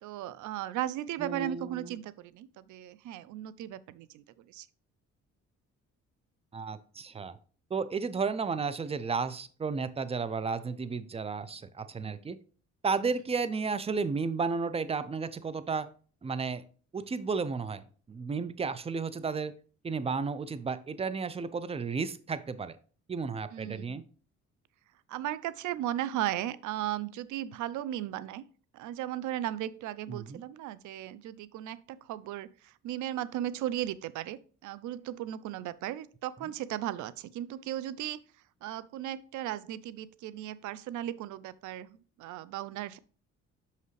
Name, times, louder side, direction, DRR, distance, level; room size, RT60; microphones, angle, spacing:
voice 1, 0.0-4.7 12.0-12.2 23.5-24.0 25.1-28.4 28.7-38.2 38.6-43.0, right 12 dB, 75° right, 18 dB, 0.5 m, -36 dB
voice 2, 1.2-2.0 6.5-7.4 7.7-12.4 12.8-15.9 16.2-16.6 16.9-19.5 19.8-22.8 23.1-24.0 30.1-30.4, right 5 dB, 20° right, 14 dB, 0.5 m, -33 dB
6.0 x 5.6 x 3.2 m, 0.41 s
cardioid pair, 90°, 30 cm